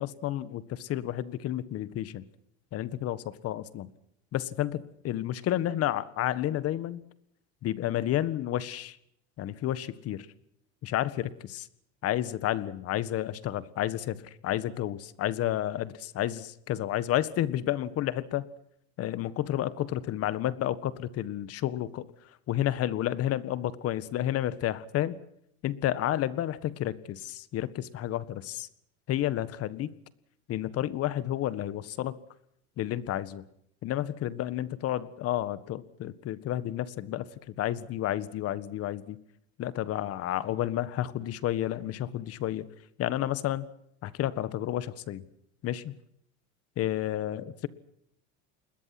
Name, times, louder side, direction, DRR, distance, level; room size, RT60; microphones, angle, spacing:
voice 1, 0.0-2.2 2.7-3.9 4.3-7.0 7.6-9.0 9.4-10.3 10.8-11.7 12.0-18.5 19.0-22.1 22.5-25.1 25.6-28.7 29.1-29.9 30.5-32.2 32.8-33.4 33.8-37.3 37.6-39.2 39.6-42.6 43.0-43.7 44.0-45.2 45.6-45.9 46.8-47.7, left 12 dB, 45° left, 16 dB, 1.7 m, -31 dB
28.5 x 21.5 x 6.1 m, 0.73 s
cardioid pair, 135°, 34 cm